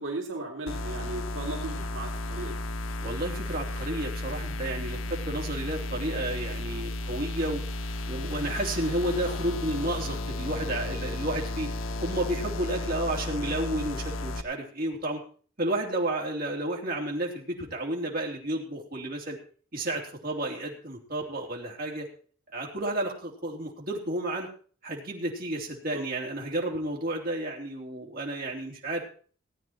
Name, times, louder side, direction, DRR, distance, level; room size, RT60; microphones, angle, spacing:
voice 1, 0.0-2.6 25.9-26.0, right 2 dB, 75° right, -1 dB, 2.6 m, -36 dB
sound 1, 0.7-14.4, left 2 dB, 85° left, 0.7 m, -33 dB
voice 2, 3.0-7.6 8.1-11.7 12.0-15.2 15.6-19.4 19.7-22.1 22.5-24.5 24.8-29.0, right 1 dB, 50° right, -1 dB, 3.3 m, -31 dB
17.5 x 9.4 x 4.5 m, 0.42 s
head